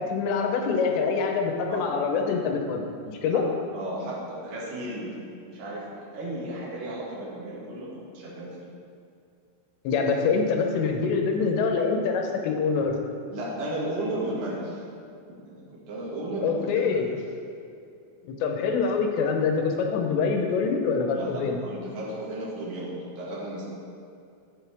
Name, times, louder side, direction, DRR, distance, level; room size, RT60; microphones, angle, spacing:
voice 1, 0.0-3.4 9.8-12.9 16.4-17.1 18.2-21.6, left 5 dB, 90° left, 3 dB, 3.2 m, -25 dB
voice 2, 3.7-5.1 5.4-8.6 13.3-14.7 15.4-17.1 21.1-22.9 23.2-23.7, right 1 dB, 55° right, -6 dB, 3.4 m, -34 dB
11.0 x 7.5 x 3.5 m, 2.4 s
omnidirectional pair, 4.9 m